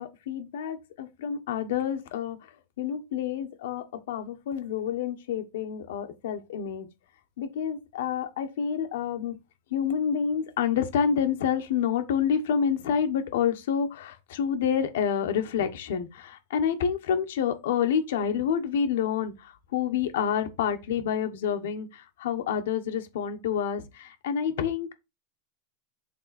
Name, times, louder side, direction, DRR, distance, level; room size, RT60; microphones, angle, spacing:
voice 1, 0.0-2.5 2.8-6.9 7.4-9.4 9.7-24.9, left 7 dB, 80° left, 1.3 m, -28 dB
6.6 x 3.7 x 4.3 m
supercardioid pair, 125°, 0 cm